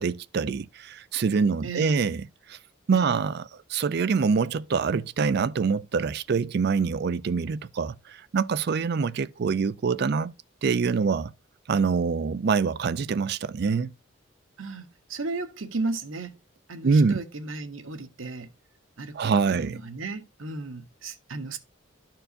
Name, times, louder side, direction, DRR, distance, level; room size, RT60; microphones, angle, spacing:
voice 1, 0.0-2.2 2.5-2.6 2.9-10.3 10.6-11.3 11.7-13.9 16.8-17.2 19.1-19.8, right 5 dB, 50° right, 0.4 m, -25 dB
voice 2, 1.6-2.0 2.9-3.2 14.6-16.4 16.7-18.5 19.0-21.6, right 3 dB, 80° right, 1.1 m, -35 dB
12.5 x 4.5 x 2.5 m
head